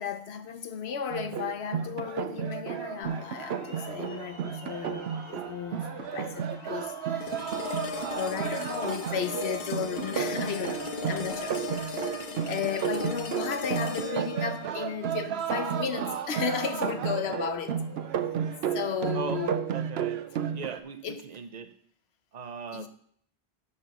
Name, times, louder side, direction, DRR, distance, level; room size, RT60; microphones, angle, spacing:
voice 1, 0.0-7.4 8.0-11.6 11.9-17.8 18.7-19.5 21.0-21.2 22.7-22.9, left 7 dB, 80° left, 1.0 m, -34 dB
sound 1, 1.1-20.8, right 8 dB, 80° right, 0.9 m, -33 dB
sound 2, 3.0-20.8, left 2 dB, 30° left, 1.6 m, -51 dB
sound 3, 7.2-16.2, left 3 dB, 50° left, 1.0 m, -37 dB
voice 2, 19.1-21.8 22.3-22.9, right 6 dB, 45° right, 0.8 m, -39 dB
7.1 x 6.9 x 6.1 m
omnidirectional pair, 1.1 m